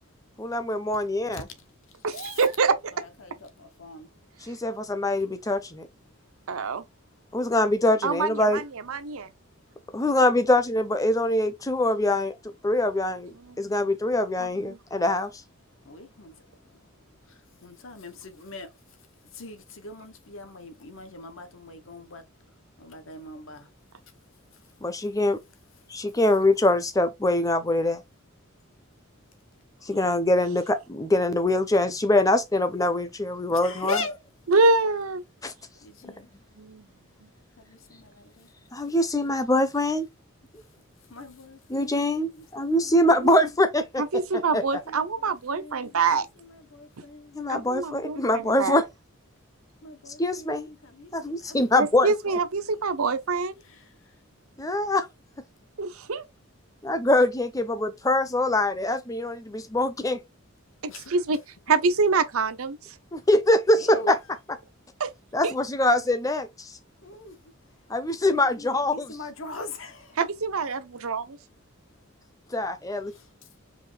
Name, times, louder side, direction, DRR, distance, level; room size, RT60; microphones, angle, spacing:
voice 1, 0.4-1.4 4.4-5.9 7.3-8.6 9.9-12.4 12.6-15.3 24.8-25.4 25.9-28.0 29.8-34.0 35.4-35.5 38.7-40.1 41.7-44.0 44.5-44.6 47.3-48.9 50.2-50.7 51.1-52.1 54.6-55.1 56.8-60.2 63.1-64.2 65.3-66.8 67.9-69.2 72.5-73.1, left 1 dB, 15° left, 0.6 m, -23 dB
voice 2, 1.0-1.4 1.9-2.4 2.9-4.1 15.8-16.8 17.3-18.7 19.3-22.2 22.8-23.7 33.5-34.1 35.8-36.3 37.6-38.5 41.1-42.1 42.3-43.0 43.3-43.6 44.9-47.4 49.8-51.6 53.6-54.1 60.9-61.1 63.7-64.1 67.0-67.5 68.4-70.2 73.1-73.3, left 3 dB, 70° left, 1.1 m, -41 dB
voice 3, 2.0-2.9 6.5-6.8 8.0-9.3 14.4-14.8 34.5-35.2 36.6-36.8 43.2-43.4 44.0-46.3 47.5-48.8 51.8-53.6 55.8-56.2 60.8-61.4 61.7-62.8 65.0-65.1 65.4-65.5 70.2-71.4, right 4 dB, 85° right, 0.7 m, -25 dB
4.9 x 3.0 x 3.3 m
head